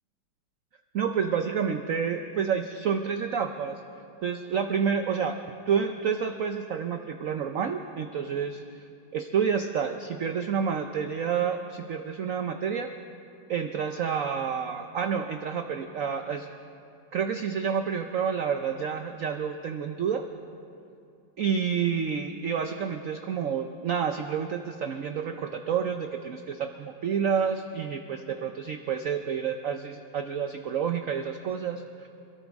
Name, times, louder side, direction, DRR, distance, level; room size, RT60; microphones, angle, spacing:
voice 1, 0.9-3.8 4.2-8.6 9.1-12.9 13.5-16.5 17.1-20.2 21.4-32.1, right 7 dB, 80° right, 6 dB, 0.7 m, -29 dB
27.5 x 13.0 x 3.5 m, 2.6 s
omnidirectional pair, 2.2 m